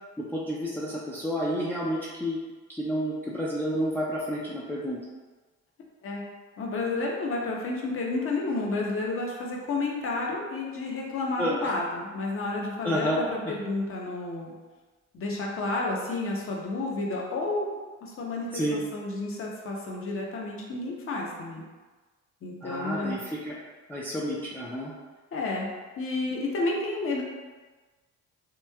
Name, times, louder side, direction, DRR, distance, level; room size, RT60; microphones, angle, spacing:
voice 1, 0.2-2.4 2.7-5.0 11.4-11.7 12.8-13.2 13.4-13.6 18.5-18.8 22.6-23.6 23.9-24.9, equal, 5° left, -6 dB, 0.4 m, -30 dB
voice 2, 6.6-14.5 15.1-21.7 22.4-23.2 25.3-25.7 26.0-27.2, left 2 dB, 45° left, -1 dB, 0.7 m, -31 dB
3.0 x 2.6 x 2.2 m, 1.3 s
cardioid pair, 90°, 30 cm